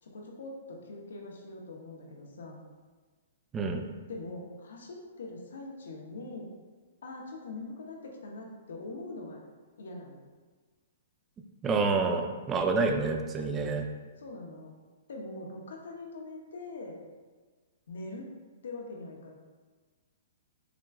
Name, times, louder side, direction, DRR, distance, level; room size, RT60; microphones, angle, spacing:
voice 1, 0.0-2.6 4.1-6.5 7.0-9.4 9.8-10.3 14.2-14.7 15.1-17.0 17.9-18.3 18.6-19.3, left 2 dB, 80° left, 0 dB, 0.7 m, -42 dB
voice 2, 3.5-3.9 11.6-13.9, right 4 dB, 20° right, 4 dB, 0.4 m, -28 dB
5.8 x 2.4 x 2.3 m, 1.4 s
hypercardioid pair, 145°, 0 cm